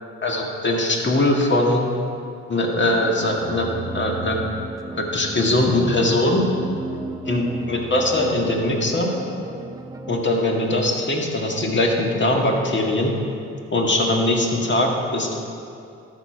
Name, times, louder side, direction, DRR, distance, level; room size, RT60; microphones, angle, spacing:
voice 1, 0.2-1.8 2.5-4.4 5.0-6.4 7.3-9.1 10.1-13.1 13.7-15.4, left 1 dB, 35° left, 0 dB, 1.8 m, -21 dB
sound 1, 2.9-10.2, right 3 dB, 10° right, 0.7 m, -34 dB
12.5 x 4.5 x 5.9 m, 2.5 s
supercardioid pair, 60°, 31 cm